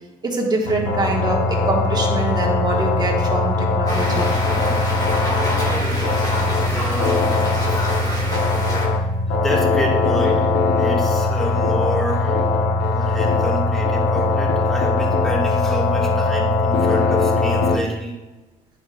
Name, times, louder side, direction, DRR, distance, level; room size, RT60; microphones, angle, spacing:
voice 1, 0.2-4.3, right 2 dB, 25° right, -1 dB, 1.4 m, -24 dB
sound 1, 0.7-17.8, left 3 dB, 90° left, 0.9 m, -20 dB
sound 2, 3.9-8.9, left 1 dB, 20° left, 1.9 m, -26 dB
voice 2, 6.0-8.4 8.7-12.5 12.9-18.1, equal, ahead, -2 dB, 1.6 m, -30 dB
10.0 x 4.8 x 2.3 m, 1.1 s
cardioid pair, 110°, 17 cm